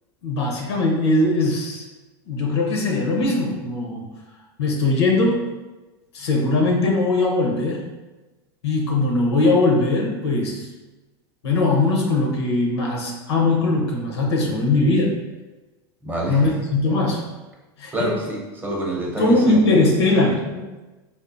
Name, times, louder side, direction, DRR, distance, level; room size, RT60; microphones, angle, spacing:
voice 1, 0.2-1.9 2.3-4.1 4.6-5.5 6.1-7.8 8.6-10.7 11.4-15.1 16.3-17.2 17.8-18.1 19.2-20.8, left 2 dB, 85° left, 0 dB, 0.8 m, -20 dB
voice 2, 16.0-16.4 17.9-19.7, right 1 dB, 15° right, -3 dB, 0.8 m, -27 dB
3.6 x 2.4 x 2.5 m, 1.2 s
hypercardioid pair, 110°, 13 cm